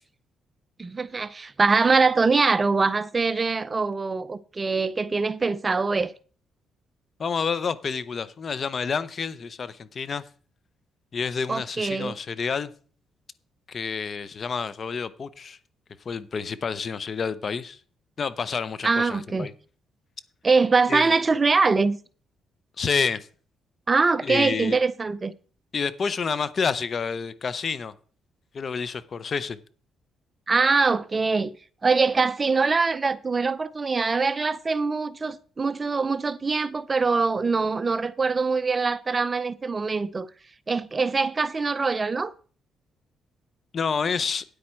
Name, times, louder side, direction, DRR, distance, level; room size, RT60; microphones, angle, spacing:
voice 1, 0.8-6.1 11.5-12.1 18.8-19.5 20.4-22.0 23.9-25.3 30.5-31.5 31.8-40.3 40.7-42.3, right 4 dB, 30° right, 0.5 m, -23 dB
voice 2, 7.2-10.2 11.1-12.7 13.7-15.6 16.0-17.8 18.2-19.5 20.9-21.1 22.8-23.3 24.2-24.8 25.7-27.9 28.5-29.6 43.7-44.4, left 5 dB, 45° left, 0.7 m, -29 dB
9.4 x 8.5 x 4.5 m
cardioid pair, 90°, 0 cm